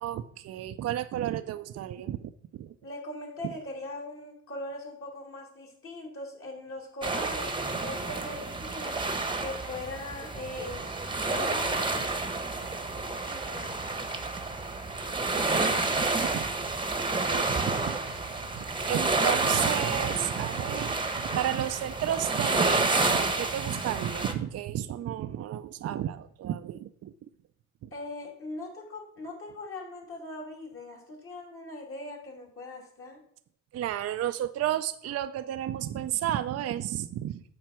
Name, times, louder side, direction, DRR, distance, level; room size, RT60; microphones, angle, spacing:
voice 1, 0.0-2.7 3.4-3.5 15.3-15.8 16.2-16.5 17.1-18.0 18.5-27.1 27.8-27.9 33.7-37.4, right 12 dB, 55° right, 10 dB, 0.5 m, -32 dB
voice 2, 2.8-9.0 9.4-10.9 11.2-12.0 13.2-13.9 27.9-33.2, left 1 dB, 45° left, -2 dB, 3.1 m, -40 dB
sound 1, 7.0-24.3, right 3 dB, 15° right, 1.0 m, -29 dB
7.6 x 4.5 x 6.0 m, 0.68 s
cardioid pair, 90°, 30 cm